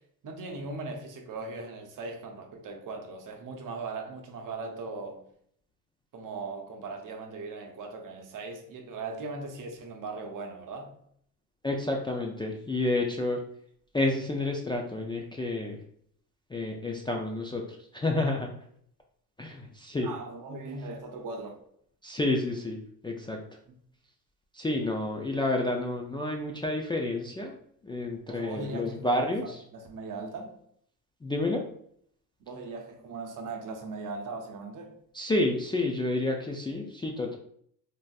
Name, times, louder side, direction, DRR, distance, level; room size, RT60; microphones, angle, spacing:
voice 1, 0.2-5.2 6.1-11.0 20.0-21.6 28.3-30.5 32.4-35.0, right 3 dB, 55° right, 0.7 m, -39 dB
voice 2, 11.6-13.4 13.9-15.8 16.5-17.6 17.9-18.5 19.4-20.1 22.0-23.4 24.5-27.6 27.8-29.6 31.2-31.6 35.1-37.4, left 2 dB, 15° left, 0.3 m, -30 dB
3.4 x 2.5 x 2.3 m
cardioid pair, 85°, 38 cm